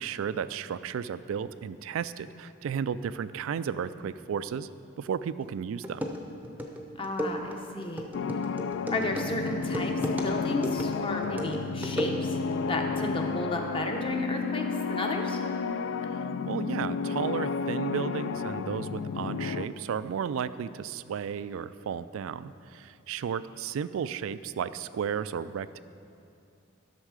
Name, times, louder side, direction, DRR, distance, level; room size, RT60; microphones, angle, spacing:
voice 1, 0.0-4.7 5.0-6.1 16.5-25.8, right 7 dB, 70° right, 15 dB, 0.3 m, -33 dB
sound 1, 5.4-5.5 5.8-12.5, equal, 10° right, 0.6 m, -35 dB
voice 2, 7.0-8.1 8.9-12.4 12.7-14.6 14.9-15.4, left 2 dB, 25° left, 3 dB, 0.7 m, -33 dB
sound 2, 8.1-19.7, left 5 dB, 60° left, 0.3 m, -32 dB
11.5 x 6.4 x 4.8 m, 2.5 s
head